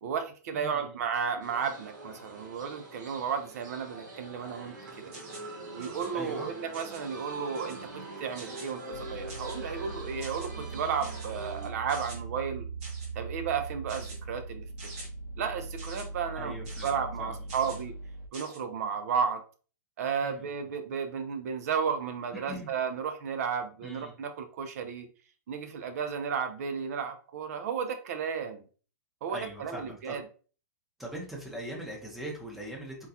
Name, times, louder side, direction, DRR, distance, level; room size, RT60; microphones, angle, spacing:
voice 1, 0.0-5.1 5.7-12.7 13.2-14.7 15.4-16.5 16.8-17.9 18.3-19.4 20.0-25.1 25.5-28.6 29.2-30.2, right 6 dB, 55° right, 8 dB, 0.5 m, -33 dB
voice 2, 0.5-0.9 6.1-6.5 16.4-17.4 20.2-20.5 22.4-22.7 23.8-24.1 29.3-30.2 31.0-33.0, right 1 dB, ahead, -2 dB, 0.7 m, -41 dB
sound 1, 1.4-11.7, right 2 dB, 80° right, 1.3 m, -43 dB
sound 2, 5.1-5.5 5.8-6.1 6.7-7.1 7.5-7.9 8.4-8.7 9.3-9.7 10.2-10.5 11.0-11.3 11.9-12.2 12.8-13.1 13.9-14.2 14.8-15.1 15.8-16.1 16.6-16.9 17.5-17.8 18.3-18.6, right 3 dB, 35° right, 1.0 m, -46 dB
sound 3, 8.9-18.3, right 3 dB, 75° left, 0.5 m, -40 dB
3.6 x 2.2 x 2.7 m, 0.38 s
hypercardioid pair, 160°, 10 cm